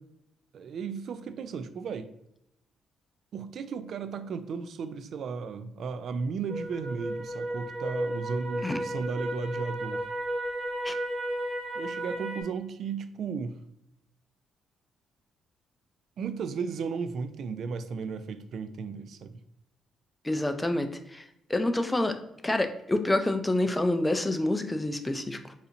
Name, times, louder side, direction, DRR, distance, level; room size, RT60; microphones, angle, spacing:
voice 1, 0.5-2.1 3.3-10.1 11.8-13.6 16.2-19.4, right 5 dB, 65° right, 11 dB, 0.3 m, -35 dB
sound 1, 6.5-12.4, right 1 dB, 30° right, 0.8 m, -33 dB
voice 2, 20.2-21.2 21.5-22.2 22.4-25.5, left 1 dB, 15° left, 7 dB, 0.4 m, -27 dB
4.1 x 2.8 x 2.5 m, 0.80 s
cardioid pair, 90°, 0 cm